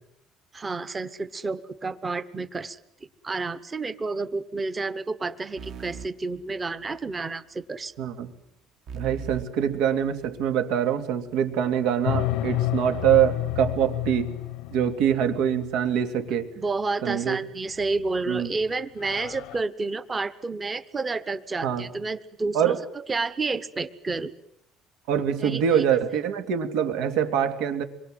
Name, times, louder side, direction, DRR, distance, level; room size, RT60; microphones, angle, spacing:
voice 1, 0.5-2.8 3.2-7.9 16.6-24.3 25.4-25.8, right 3 dB, 20° right, 14 dB, 1.0 m, -30 dB
sound 1, 5.6-7.2 8.9-10.6, right 7 dB, 45° right, 1.4 m, -41 dB
voice 2, 8.0-8.3 8.9-14.3 14.7-16.5 17.0-17.4 18.3-18.5 21.6-21.9 22.5-22.8 25.1-27.8, right 9 dB, 85° right, 8 dB, 2.5 m, -24 dB
sound 2, 12.0-15.9 17.8-18.3 18.6-18.7 19.0-19.6, left 14 dB, 80° left, 0.9 m, -30 dB
26.5 x 23.0 x 7.9 m, 0.75 s
cardioid pair, 165°, 0 cm